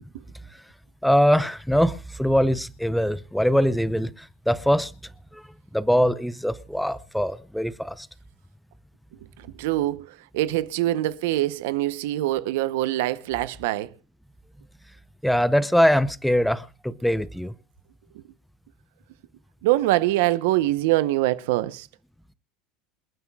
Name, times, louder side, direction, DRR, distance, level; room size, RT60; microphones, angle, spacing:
voice 1, 1.0-4.9 5.3-5.4 5.7-8.1 15.2-17.5, equal, ahead, 0.5 m, -22 dB
voice 2, 9.4-13.9 19.6-21.9, right 16 dB, 85° right, 0.7 m, -24 dB
28.0 x 9.6 x 2.3 m
cardioid pair, 155°, 0 cm